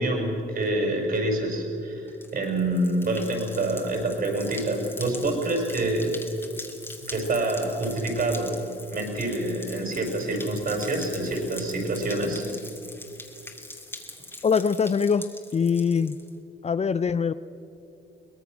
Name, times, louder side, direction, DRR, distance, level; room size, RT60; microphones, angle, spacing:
voice 1, 0.0-6.2 7.1-12.5, right 1 dB, 45° right, 2 dB, 5.7 m, -27 dB
sound 1, 2.1-16.3, left 2 dB, 10° left, 2.5 m, -42 dB
voice 2, 14.4-16.2 16.6-17.3, left 6 dB, 35° left, 14 dB, 0.5 m, -23 dB
23.0 x 19.0 x 6.2 m, 2.7 s
cardioid pair, 90°, 20 cm